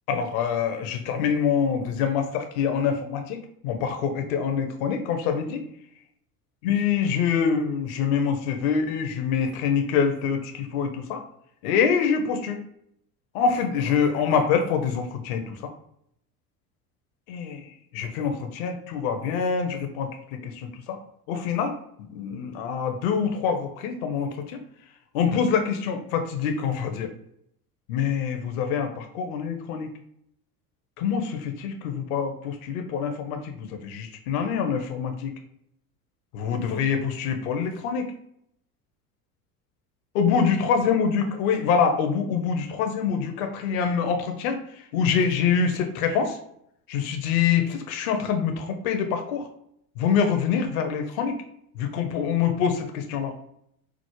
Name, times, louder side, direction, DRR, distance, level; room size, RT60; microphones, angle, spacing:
voice 1, 0.1-5.7 6.6-11.2 11.6-12.6 13.3-15.7 17.3-21.0 21.3-21.7 22.1-24.6 25.1-27.1 27.9-29.9 31.0-35.3 36.3-38.1 40.1-46.4 46.9-49.5 50.0-51.4 51.8-53.3, left 6 dB, 65° left, 5 dB, 0.7 m, -25 dB
4.7 x 2.0 x 3.0 m, 0.73 s
hypercardioid pair, 80°, 45 cm